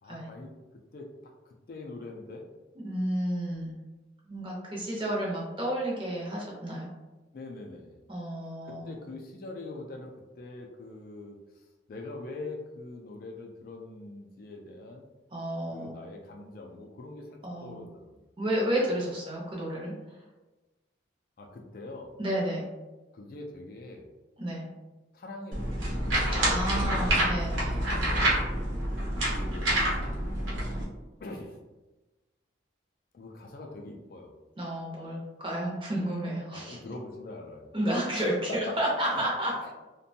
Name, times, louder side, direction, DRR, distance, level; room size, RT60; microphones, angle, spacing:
voice 1, 0.0-0.5 0.9-1.1 1.5-2.4 7.3-8.0 8.6-11.6 11.9-15.0 15.7-18.3 21.4-22.1 23.1-24.1 25.1-27.3 28.1-28.5 29.3-30.3 31.2-31.6 33.1-34.3 36.5-37.7 38.5-39.2 39.6-39.7, left 2 dB, 50° left, 1 dB, 0.3 m, -43 dB
voice 2, 2.8-3.7 4.3-6.9 8.1-9.0 15.3-15.9 17.4-17.8 18.4-19.9 22.2-22.6 24.4-24.6 26.3-27.8 34.6-36.8 37.7-39.5, right 1 dB, 25° right, -3 dB, 0.6 m, -31 dB
sound 1, 25.5-30.8, right 1 dB, 90° right, 0.9 m, -27 dB
2.5 x 2.2 x 2.6 m, 1.1 s
head